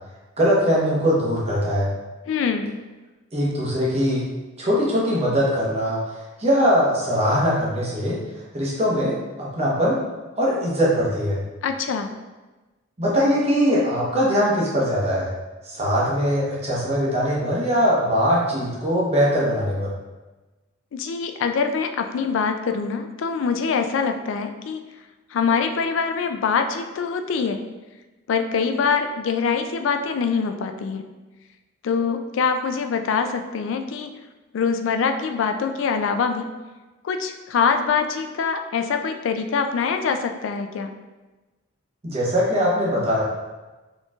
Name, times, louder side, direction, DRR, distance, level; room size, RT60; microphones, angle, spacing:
voice 1, 0.4-1.9 3.3-4.2 4.6-8.2 8.5-10.0 10.3-11.4 13.0-15.3 15.7-19.9 42.0-43.2, equal, 30° right, -6 dB, 0.9 m, -21 dB
voice 2, 2.3-2.8 11.6-12.1 20.9-24.8 25.3-27.6 28.3-31.0 31.8-34.1 34.5-36.5 37.0-40.9, left 5 dB, 70° left, 6 dB, 0.3 m, -24 dB
4.2 x 3.1 x 2.3 m, 1.2 s
head